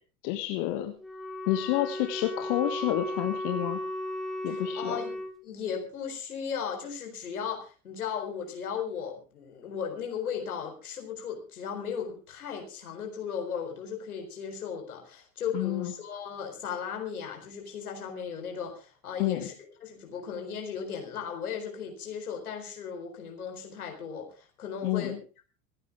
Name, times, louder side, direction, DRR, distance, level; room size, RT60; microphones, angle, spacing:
voice 1, 0.2-0.9 1.5-3.8 4.4-5.0 15.5-15.9 19.2-19.5 24.8-25.2, left 14 dB, 50° left, 6 dB, 1.6 m, -29 dB
Wind instrument woodwind instrument, 1.0-5.4, left 1 dB, ahead, 3.1 m, -35 dB
voice 2, 4.5-19.5 19.8-25.2, left 7 dB, 70° left, 3 dB, 4.3 m, -36 dB
27.0 x 9.1 x 3.6 m, 0.36 s
figure-of-eight pair, 75°, 45 cm